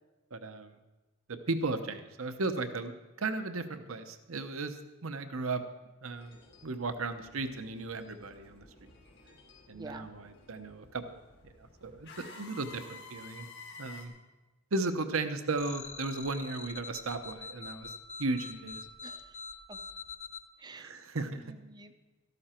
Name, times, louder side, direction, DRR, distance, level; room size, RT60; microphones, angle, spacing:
voice 1, 0.3-0.7 1.3-2.9 3.2-4.8 5.0-5.6 6.0-6.4 6.6-8.6 9.7-11.2 11.8-13.5 13.8-14.1 14.7-17.9 18.2-18.8 20.8-21.5, right 3 dB, 70° right, 9 dB, 0.9 m, -35 dB
sound 1, 6.1-14.1, left 3 dB, 50° left, 1.7 m, -53 dB
voice 2, 9.7-10.1 19.0-19.4 19.7-19.8 20.6-20.9 21.3-22.1, right 2 dB, 20° right, 9 dB, 0.7 m, -49 dB
sound 2, 15.6-20.4, left 4 dB, 30° left, 0.6 m, -44 dB
13.5 x 12.0 x 4.4 m, 1.2 s
head